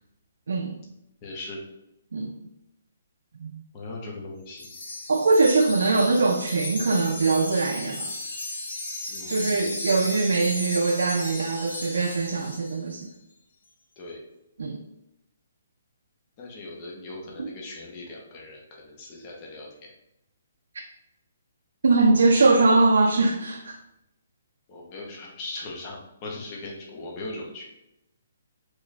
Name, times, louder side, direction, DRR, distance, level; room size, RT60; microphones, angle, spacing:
voice 1, 1.2-1.6 3.7-4.7 9.1-9.9 14.0-14.2 16.4-19.9 24.7-27.7, left 2 dB, 20° left, -2 dB, 0.6 m, -39 dB
Wind chime, 4.6-12.8, left 2 dB, 65° left, 0.8 m, -35 dB
voice 2, 5.1-8.1 9.3-13.1 14.6-14.8 17.4-17.5 21.8-23.8, right 3 dB, 80° right, 2 dB, 0.4 m, -22 dB
3.1 x 2.2 x 4.0 m, 0.85 s
hypercardioid pair, 175°, 0 cm